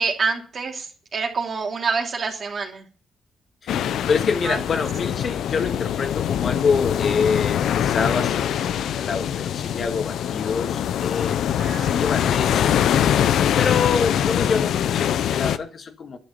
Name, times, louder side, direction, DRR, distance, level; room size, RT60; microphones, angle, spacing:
voice 1, 0.0-2.8 4.4-4.6 11.6-12.1, right 5 dB, 50° right, 3.0 m, -27 dB
voice 2, 3.6-8.4 8.8-11.5 11.7-12.8 13.6-16.2, left 5 dB, 50° left, 1.9 m, -26 dB
sound 1, 3.7-15.6, left 10 dB, 85° left, 0.7 m, -23 dB
11.5 x 6.5 x 9.3 m
cardioid pair, 105°, 0 cm